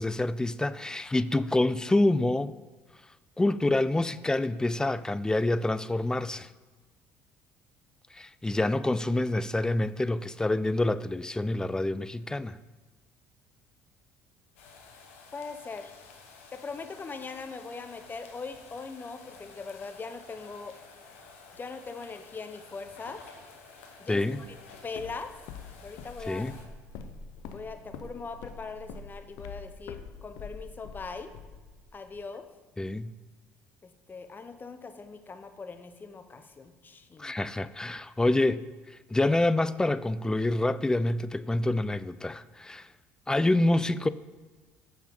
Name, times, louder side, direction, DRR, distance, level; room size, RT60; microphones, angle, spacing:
voice 1, 0.0-2.5 3.4-6.5 8.1-12.6 24.1-24.4 26.3-26.5 32.8-33.1 37.2-38.6 39.1-42.9 43.3-44.1, left 2 dB, 10° left, 0.3 m, -27 dB
sound 1, 14.6-26.7, left 4 dB, 85° left, 1.0 m, -52 dB
voice 2, 15.3-15.9 16.5-20.7 21.5-23.2 24.0-24.6 24.8-25.3 25.8-26.5 27.5-31.3 31.9-32.4 33.8-37.3, left 4 dB, 30° left, 0.8 m, -41 dB
Walk footsteps, 24.3-32.2, left 5 dB, 70° left, 0.6 m, -45 dB
7.4 x 5.7 x 5.4 m
hypercardioid pair, 65°, 7 cm